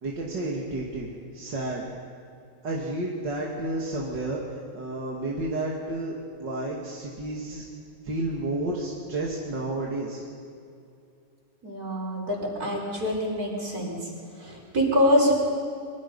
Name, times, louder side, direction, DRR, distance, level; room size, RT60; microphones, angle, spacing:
voice 1, 0.0-1.1 1.3-1.8 2.6-7.6 8.0-10.2, right 2 dB, 90° right, -3 dB, 3.0 m, -31 dB
voice 2, 11.6-14.0 14.4-15.3, left 1 dB, 55° right, -2 dB, 5.7 m, -25 dB
26.0 x 24.5 x 5.5 m, 2.5 s
omnidirectional pair, 1.8 m